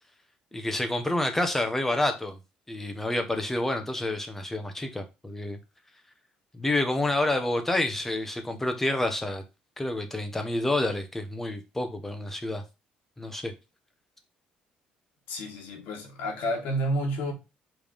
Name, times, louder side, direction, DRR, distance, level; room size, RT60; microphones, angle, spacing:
voice 1, 0.5-2.4 2.7-5.6 6.5-9.4 9.8-12.6 13.2-13.5, left 1 dB, 10° left, 1.2 m, -28 dB
voice 2, 15.3-17.3, equal, 85° left, 2.6 m, -30 dB
5.2 x 3.7 x 5.1 m
cardioid pair, 120°, 3 cm